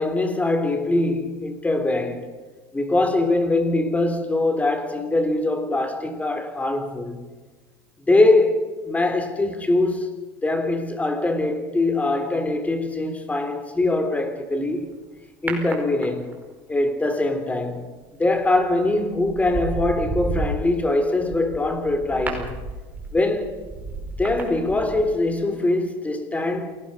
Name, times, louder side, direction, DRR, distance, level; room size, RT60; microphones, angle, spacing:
voice 1, 0.0-2.3 2.7-7.2 8.1-10.1 10.4-14.9 15.4-16.3 16.7-17.9 18.2-22.6 23.1-23.6 24.2-26.8, left 2 dB, 10° left, 3.5 m, -22 dB
sound 1, 15.5-16.5 18.4-18.6 19.1-25.3 25.6-25.7, right 2 dB, 15° right, 5.1 m, -32 dB
28.5 x 19.0 x 5.6 m
supercardioid pair, 125°, 12 cm